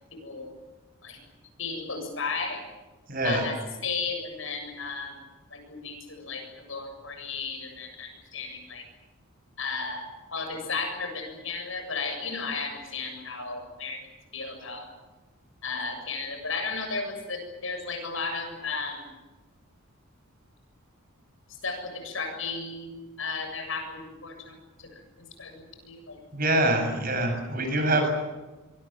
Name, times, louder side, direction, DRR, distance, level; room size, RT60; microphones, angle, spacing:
voice 1, 0.1-0.5 1.0-1.2 1.6-2.6 3.2-5.2 5.5-8.8 9.6-10.0 10.3-14.0 14.3-14.9 15.6-19.1 21.6-24.9 25.2-26.2 26.6-26.8, left 4 dB, 70° left, 5 dB, 7.5 m, -34 dB
voice 2, 3.1-3.4 26.3-28.1, right 1 dB, 45° right, 5 dB, 7.4 m, -25 dB
25.0 x 23.5 x 7.5 m, 1.1 s
head